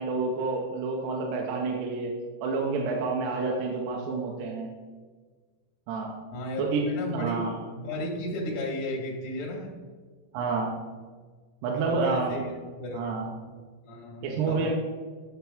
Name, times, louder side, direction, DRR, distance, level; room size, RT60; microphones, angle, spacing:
voice 1, 0.0-2.1 2.4-4.7 5.9-6.1 6.6-6.8 7.1-7.5 10.3-10.7 11.6-12.4 12.9-13.3 14.2-14.7, right 4 dB, 80° right, -1 dB, 2.6 m, -29 dB
voice 2, 6.3-9.8 11.7-13.4 13.8-14.7, left 1 dB, 75° left, -1 dB, 1.6 m, -35 dB
10.5 x 5.8 x 3.5 m, 1.5 s
omnidirectional pair, 5.4 m